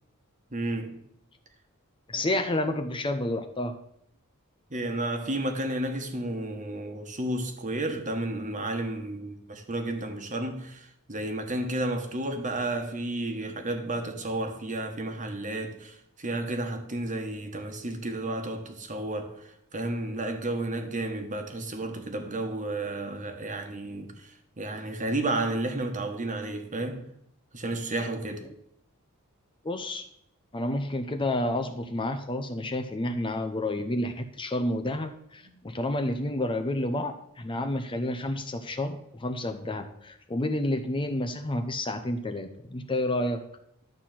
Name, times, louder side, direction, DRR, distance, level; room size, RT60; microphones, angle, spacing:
voice 1, 0.5-1.1 4.7-27.1 27.5-28.4 35.4-35.5, right 2 dB, 35° right, 1.4 m, -32 dB
voice 2, 2.1-3.7 29.6-30.1 30.5-43.4, left 1 dB, 25° left, 0.7 m, -30 dB
12.0 x 4.3 x 7.5 m
head